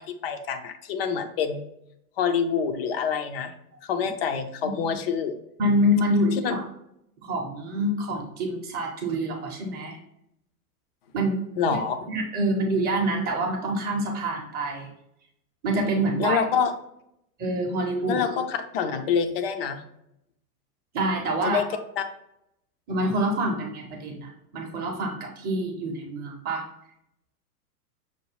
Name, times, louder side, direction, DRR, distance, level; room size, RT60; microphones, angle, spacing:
voice 1, 0.0-1.7 2.2-3.5 3.8-5.4 6.4-6.6 11.6-12.0 16.2-16.7 18.1-19.8 21.4-21.7 22.0-22.1, left 7 dB, 40° left, 7 dB, 0.6 m, -26 dB
voice 2, 5.6-6.6 7.2-10.0 11.1-11.4 11.7-11.8 12.1-14.9 15.6-16.4 17.4-18.2 20.9-21.6 22.9-26.6, right 1 dB, 20° right, 1 dB, 0.7 m, -26 dB
6.3 x 2.2 x 3.2 m, 0.79 s
figure-of-eight pair, 100°, 48 cm